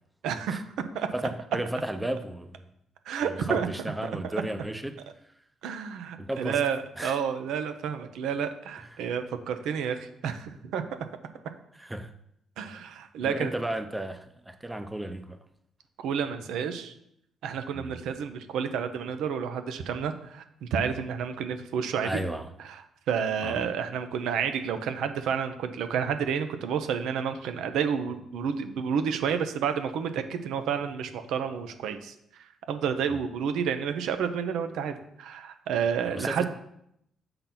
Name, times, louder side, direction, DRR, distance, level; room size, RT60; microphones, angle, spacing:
voice 1, 0.2-0.7 0.9-1.1 3.1-3.7 4.2-4.3 5.6-10.8 12.6-13.5 16.0-16.9 17.4-22.2 22.7-22.8 23.1-32.1 32.7-36.5, right 7 dB, 85° right, 0.7 m, -30 dB
voice 2, 1.1-2.7 3.2-5.0 6.2-6.6 7.0-7.2 11.8-12.1 13.2-15.4 17.7-18.0 22.0-22.5 23.4-23.7 36.1-36.5, right 1 dB, 10° right, 0.6 m, -34 dB
6.8 x 3.9 x 5.8 m
cardioid pair, 90°, 0 cm